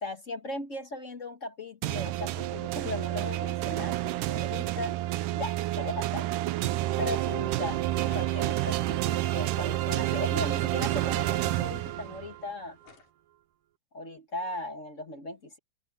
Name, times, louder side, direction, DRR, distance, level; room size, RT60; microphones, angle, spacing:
voice 1, 0.0-5.0 5.3-6.3 7.0-7.8 8.1-12.8 13.9-15.6, left 2 dB, 35° left, 1.3 m, -37 dB
sound 1, 1.8-12.4, right 15 dB, 90° right, 2.3 m, -29 dB
sound 2, 7.9-12.4 12.8-13.1, left 5 dB, 80° left, 5.7 m, -53 dB
omnidirectional pair, 3.6 m